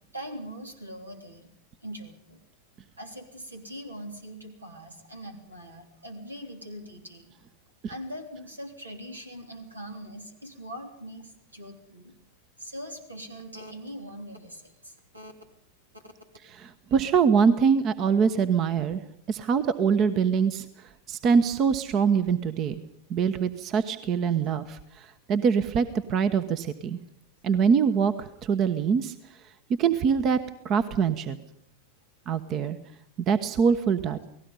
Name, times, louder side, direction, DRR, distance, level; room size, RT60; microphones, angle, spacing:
voice 1, 0.1-1.5 1.8-2.4 3.0-7.3 7.9-12.2 12.6-15.3 15.9-16.1, equal, 80° right, 5 dB, 3.4 m, -42 dB
voice 2, 16.6-19.0 19.3-20.7 21.1-22.8 23.1-27.0 27.4-29.1 29.8-30.4 30.6-31.4 32.3-32.8 33.3-34.3, right 6 dB, 35° right, 12 dB, 1.1 m, -24 dB
29.0 x 18.5 x 5.5 m, 0.68 s
figure-of-eight pair, 90°, 0 cm